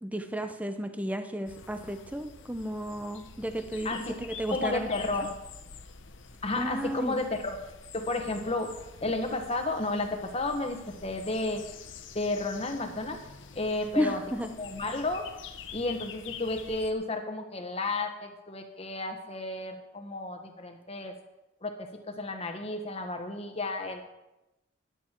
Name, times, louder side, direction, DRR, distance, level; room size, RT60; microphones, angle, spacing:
voice 1, 0.0-5.1 6.6-7.2 14.0-14.5, equal, 10° right, 8 dB, 0.8 m, -33 dB
sound 1, 1.5-16.9, left 6 dB, 80° left, 1.0 m, -47 dB
voice 2, 4.5-5.3 6.4-7.5 7.9-8.7 9.0-11.6 12.1-13.2 13.5-14.2 14.6-15.3 15.7-21.1 21.6-24.0, left 2 dB, 30° left, 5 dB, 1.4 m, -32 dB
13.5 x 11.0 x 4.6 m, 0.93 s
head